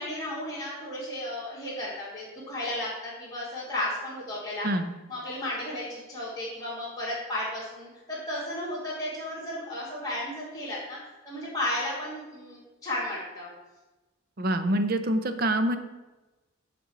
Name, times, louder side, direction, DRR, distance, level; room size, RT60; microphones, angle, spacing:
voice 1, 0.0-4.7 5.1-11.0 11.2-13.5, left 1 dB, 15° left, -10 dB, 2.2 m, -34 dB
voice 2, 14.4-15.8, right 1 dB, 50° right, 8 dB, 0.7 m, -25 dB
8.2 x 4.4 x 6.1 m, 1.1 s
head